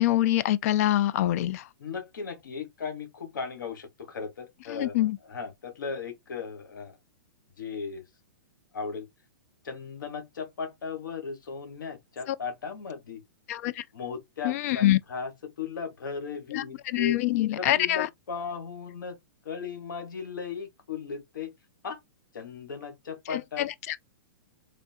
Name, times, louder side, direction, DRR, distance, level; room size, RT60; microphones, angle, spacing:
voice 1, 0.0-1.6 4.7-5.2 12.3-12.4 13.5-13.8 14.4-15.0 16.5-16.6 16.9-18.1 23.3-24.0, left 14 dB, 50° left, 0.4 m, -25 dB
voice 2, 1.8-7.0 7.6-8.0 8.7-9.1 9.6-13.2 13.9-15.3 15.6-17.2 17.6-19.2 19.4-21.5 21.8-22.0 22.3-23.7, left 5 dB, 85° left, 1.2 m, -37 dB
3.4 x 2.4 x 2.6 m
hypercardioid pair, 135°, 10 cm